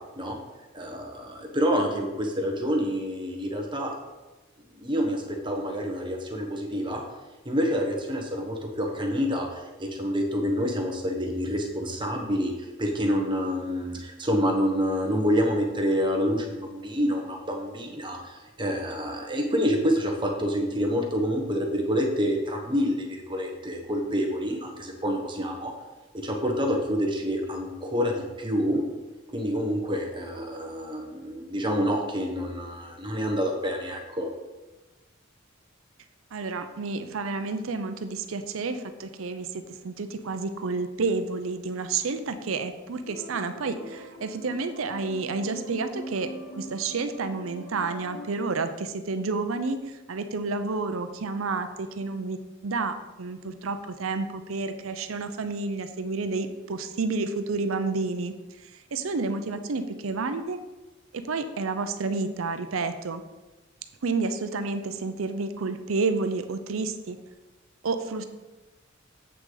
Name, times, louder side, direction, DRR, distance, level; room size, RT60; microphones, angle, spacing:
voice 1, 0.7-3.9 4.7-7.0 7.4-25.7 26.2-28.8 29.3-34.3, equal, 25° right, 1 dB, 1.1 m, -27 dB
voice 2, 36.3-46.3 46.6-52.4 52.6-58.3 58.6-60.6 61.1-63.2 64.0-67.2 67.8-68.2, right 3 dB, 80° right, 9 dB, 0.6 m, -30 dB
sound 1, 43.1-48.3, equal, 70° left, 1.0 m, -42 dB
8.0 x 6.1 x 3.9 m, 1.1 s
head